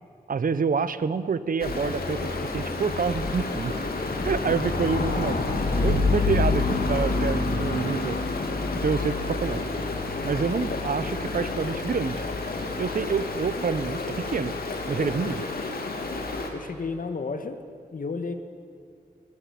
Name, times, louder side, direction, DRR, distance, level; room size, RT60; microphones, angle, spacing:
voice 1, 0.3-3.8 4.2-5.4 5.8-8.2 8.8-9.6 10.2-12.3 12.8-14.5 14.9-15.5, right 5 dB, 65° right, 14 dB, 0.9 m, -27 dB
Stream, 1.6-16.5, left 3 dB, 85° left, 2.9 m, -28 dB
sound 1, 1.6-7.8, left 2 dB, 50° left, 7.2 m, -39 dB
voice 2, 16.5-17.6 17.9-18.3, left 4 dB, 65° left, 8 dB, 1.9 m, -32 dB
21.5 x 21.0 x 8.6 m, 2.4 s
wide cardioid pair, 110°, 15 cm